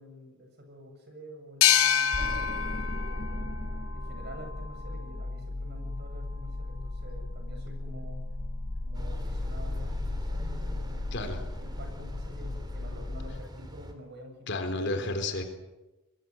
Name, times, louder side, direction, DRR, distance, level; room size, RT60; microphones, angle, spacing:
voice 1, 0.0-2.5 3.1-8.3 8.8-15.1, equal, 50° right, 4 dB, 7.5 m, -48 dB
sound 1, 1.6-5.0, left 9 dB, 85° left, 1.1 m, -28 dB
sound 2, 2.1-13.4, left 2 dB, 40° left, 0.8 m, -35 dB
sound 3, 8.9-13.9, equal, 20° right, 3.2 m, -45 dB
voice 2, 14.5-15.4, left 2 dB, 55° left, 7 dB, 3.8 m, -31 dB
26.0 x 22.0 x 7.8 m, 1.0 s
head